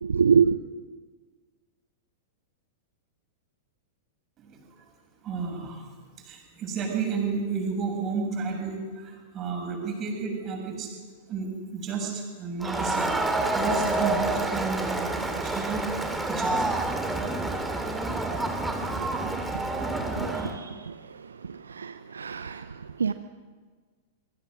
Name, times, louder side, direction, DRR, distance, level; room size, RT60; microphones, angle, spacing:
voice 1, 0.0-0.6 18.1-23.1, right 6 dB, 70° right, 11 dB, 0.7 m, -28 dB
voice 2, 5.2-5.8 6.2-10.9 11.3-13.1 13.5-15.8 16.3-16.6, right 5 dB, 30° right, 1 dB, 7.4 m, -32 dB
Crowd, 12.6-20.5, right 2 dB, 5° right, 2.8 m, -28 dB
26.5 x 23.0 x 6.3 m, 1.5 s
figure-of-eight pair, 100°, 0 cm